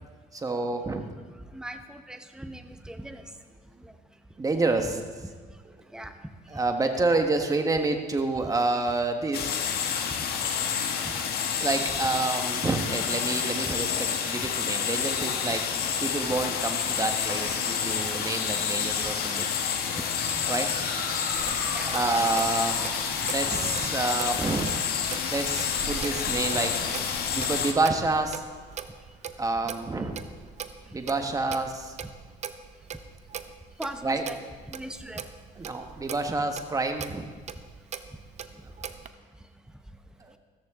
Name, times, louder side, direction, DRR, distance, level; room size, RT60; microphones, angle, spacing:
voice 1, 0.3-1.0 4.4-5.0 6.5-9.5 11.6-15.7 16.0-19.5 20.5-20.7 21.8-22.9 23.3-24.7 25.3-26.8 27.3-28.4 29.4-30.2 30.9-31.9 34.0-34.2 35.6-37.3 40.2-40.3, right 3 dB, 20° right, 5 dB, 1.4 m, -28 dB
voice 2, 1.5-3.2 3.8-3.9 5.9-6.1 19.0-19.1 20.3-20.4 21.7-21.9 23.8-23.9 27.4-27.5 29.6-29.7 33.8-34.4 34.7-35.2, right 1 dB, 5° right, 7 dB, 0.9 m, -40 dB
sound 1, 9.3-27.7, left 7 dB, 65° left, 1.4 m, -29 dB
Motor vehicle (road) / Siren, 20.3-28.8, right 1 dB, 75° right, 5.0 m, -43 dB
Clock, 21.3-39.1, right 8 dB, 45° right, 0.7 m, -41 dB
14.0 x 14.0 x 3.7 m, 1.5 s
cardioid pair, 110°, 17 cm